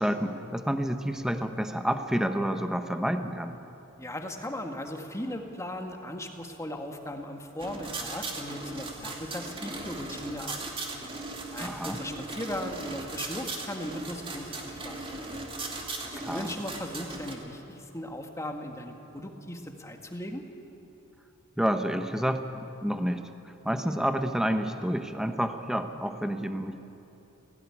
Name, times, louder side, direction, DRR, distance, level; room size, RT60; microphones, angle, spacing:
voice 1, 0.0-3.6 11.6-12.0 16.2-16.5 21.6-26.8, equal, 5° right, 7 dB, 1.0 m, -29 dB
voice 2, 4.0-10.8 11.5-15.0 16.0-20.4, left 1 dB, 15° left, 4 dB, 1.7 m, -38 dB
sound 1, 7.6-17.3, right 2 dB, 25° right, 2.5 m, -38 dB
17.5 x 17.0 x 9.9 m, 2.9 s
head